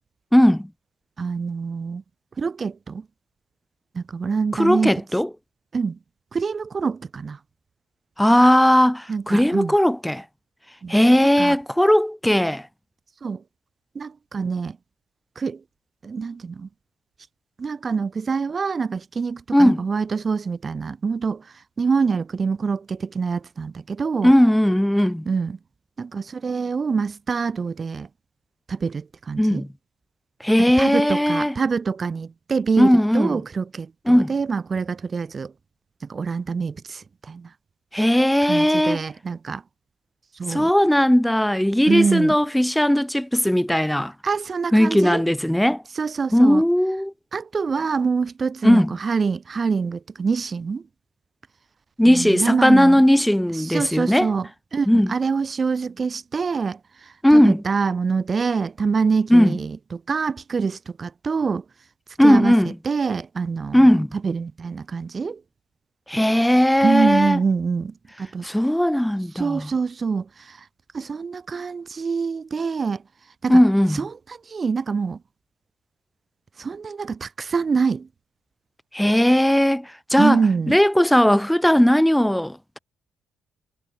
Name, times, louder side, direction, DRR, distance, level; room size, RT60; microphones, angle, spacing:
voice 1, 0.3-0.7 4.5-5.3 8.2-10.2 10.9-12.6 19.5-19.8 24.2-25.2 29.4-29.7 30.4-31.5 32.8-33.4 34.1-34.3 37.9-39.0 40.5-44.1 44.7-45.8 46.3-47.1 48.6-48.9 52.0-54.3 54.9-55.1 57.2-57.6 59.3-59.6 62.2-62.7 63.7-64.1 66.1-67.4 68.4-69.7 73.5-74.0 78.9-80.4 80.7-82.8, equal, 5° left, 6.3 m, -17 dB
voice 2, 1.2-2.0 2.4-3.1 3.9-4.9 5.7-6.0 6.3-7.4 9.1-9.8 10.8-11.0 11.4-11.6 13.2-13.4 13.9-14.8 15.4-15.6 16.0-16.7 17.6-24.3 25.2-25.6 26.0-28.1 28.7-29.6 30.8-35.5 36.0-37.5 38.4-39.6 40.3-40.7 41.8-42.4 44.2-45.2 45.9-46.6 47.3-50.8 52.0-53.0 53.5-61.6 62.2-65.4 66.8-68.5 69.3-70.7 70.9-73.0 73.4-73.6 73.9-75.2 76.6-78.1 80.2-80.8, right 5 dB, 35° right, 6.1 m, -25 dB
cardioid pair, 90°, 0 cm